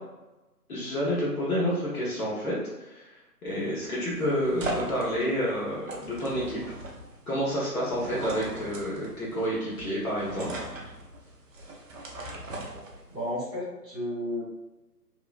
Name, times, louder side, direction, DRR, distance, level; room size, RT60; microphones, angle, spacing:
voice 1, 0.7-3.1 3.4-6.6 7.3-10.5, equal, 60° left, -7 dB, 1.1 m, -29 dB
sound 1, 3.5-13.3, right 2 dB, 55° right, 0.6 m, -39 dB
voice 2, 13.1-14.4, left 1 dB, ahead, -28 dB, 0.6 m, -32 dB
2.9 x 2.1 x 2.3 m, 1.0 s
figure-of-eight pair, 140°, 49 cm